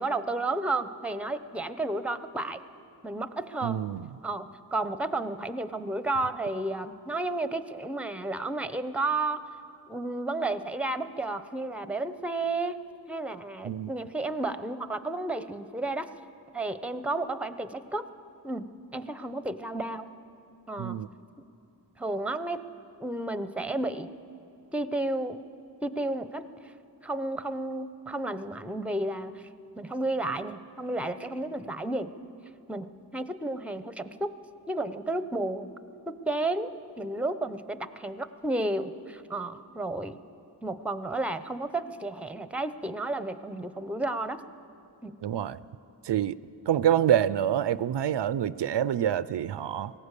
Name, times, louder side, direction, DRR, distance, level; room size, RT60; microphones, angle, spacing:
voice 1, 0.0-2.6 3.0-3.8 4.2-9.4 9.9-12.8 13.1-16.1 16.5-18.1 18.4-20.1 20.7-21.0 22.0-22.6 23.0-24.1 24.7-25.4 25.8-26.5 27.0-29.5 29.8-32.1 32.7-34.3 34.7-35.7 36.1-40.2 40.6-44.4 45.0-45.2, right 2 dB, 5° right, 12 dB, 0.7 m, -32 dB
voice 2, 3.6-4.1 13.6-13.9 20.8-21.1 45.2-45.6 46.0-46.4 46.7-49.9, right 10 dB, 85° right, 17 dB, 0.5 m, -26 dB
19.0 x 17.0 x 8.3 m, 2.7 s
wide cardioid pair, 70°, 41 cm